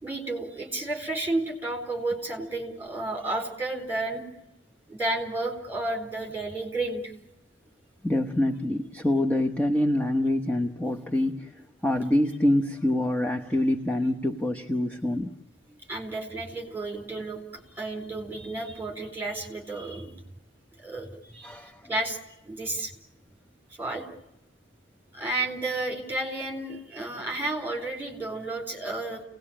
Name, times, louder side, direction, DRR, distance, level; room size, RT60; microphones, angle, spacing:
voice 1, 0.0-4.2 4.9-7.1 15.9-20.1 20.8-21.1 21.3-21.6 21.9-22.2 22.5-22.9 23.8-24.0 25.1-29.2, right 2 dB, 10° right, 3 dB, 4.2 m, -32 dB
voice 2, 8.0-15.4 21.4-21.8, left 1 dB, 10° left, 2 dB, 1.0 m, -26 dB
30.0 x 18.5 x 8.8 m, 0.92 s
head